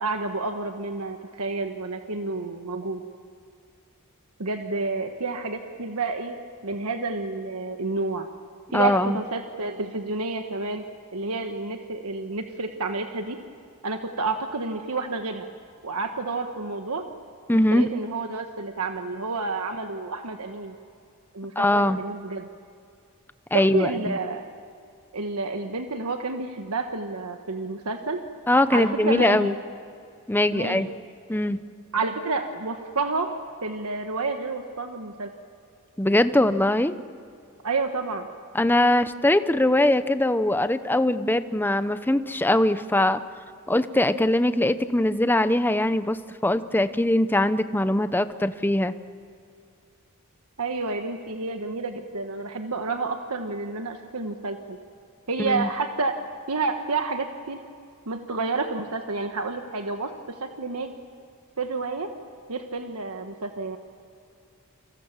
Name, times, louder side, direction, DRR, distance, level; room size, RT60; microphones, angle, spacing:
voice 1, 0.0-3.0 4.4-6.4 6.6-8.3 8.7-10.8 11.1-13.4 13.8-15.4 15.8-17.0 17.5-20.7 21.3-22.5 23.5-24.4 25.1-28.2 28.7-29.6 30.5-30.9 31.9-33.3 33.6-35.3 37.6-38.3 50.6-54.8 55.3-56.2 56.5-57.6 58.1-60.1 60.4-61.0 61.6-62.1 62.5-63.8, right 3 dB, 85° right, 5 dB, 1.4 m, -29 dB
voice 2, 8.7-9.2 17.5-17.9 21.6-22.0 23.5-24.2 28.5-29.5 30.3-30.9 31.3-31.6 36.0-36.9 38.5-43.2 43.7-46.2 46.4-49.0 55.4-55.7, left 1 dB, 10° left, 11 dB, 0.7 m, -21 dB
30.0 x 25.5 x 7.4 m, 2.5 s
head